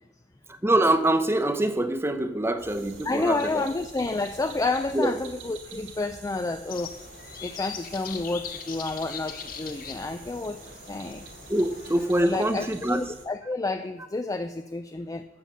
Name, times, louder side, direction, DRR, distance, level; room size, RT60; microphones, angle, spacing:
voice 1, 0.5-3.6 4.9-5.1 11.5-13.1, right 1 dB, 15° right, 9 dB, 0.7 m, -24 dB
sound 1, 2.6-13.3, right 4 dB, 70° right, 2.1 m, -47 dB
voice 2, 3.0-6.9 7.4-11.3 12.2-15.3, left 3 dB, 20° left, 9 dB, 0.3 m, -30 dB
sound 2, 6.7-12.2, left 7 dB, 50° left, 1.0 m, -41 dB
13.0 x 7.2 x 5.5 m, 1.1 s
head